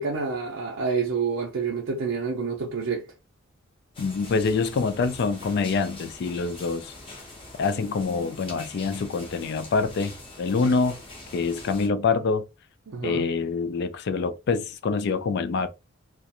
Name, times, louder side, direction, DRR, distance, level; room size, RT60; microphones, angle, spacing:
voice 1, 0.0-3.1 12.9-13.3, right 5 dB, 70° right, 0.5 m, -28 dB
sound 1, 3.9-11.9, left 2 dB, 25° left, 0.8 m, -43 dB
voice 2, 4.0-6.9 7.6-10.1 10.4-11.0 11.3-12.4 13.0-15.7, left 4 dB, 55° left, 0.3 m, -25 dB
2.4 x 2.1 x 2.8 m
head